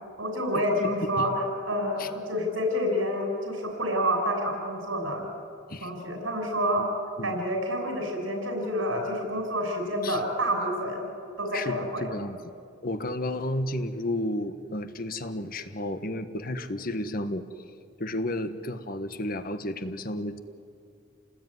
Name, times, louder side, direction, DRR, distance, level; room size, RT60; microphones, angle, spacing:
voice 1, 0.0-5.3 5.8-6.9 7.2-11.0 11.4-12.1, equal, 90° right, 2 dB, 6.3 m, -28 dB
voice 2, 11.5-12.4 12.8-17.4 18.0-20.4, left 1 dB, 45° left, 9 dB, 1.5 m, -32 dB
29.5 x 19.5 x 9.6 m, 2.5 s
head